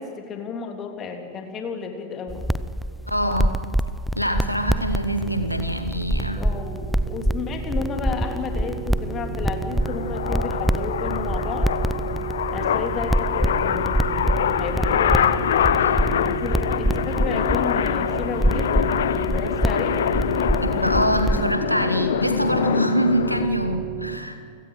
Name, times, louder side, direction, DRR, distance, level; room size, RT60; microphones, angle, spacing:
voice 1, 0.0-2.5 6.4-11.7 12.5-14.2 14.6-15.3 16.2-18.8 19.3-20.0, left 5 dB, 30° left, 3 dB, 3.3 m, -32 dB
sound 1, 2.3-21.5, right 1 dB, ahead, 0.7 m, -26 dB
voice 2, 3.1-3.6 4.2-6.4 15.8-15.9 20.6-24.4, equal, 90° left, 8 dB, 1.2 m, -24 dB
sound 2, 4.3-24.2, right 7 dB, 50° right, 4.6 m, -33 dB
sound 3, 8.1-23.5, left 10 dB, 60° left, 0.7 m, -25 dB
29.5 x 17.5 x 6.5 m, 2.3 s
figure-of-eight pair, 90°, 0 cm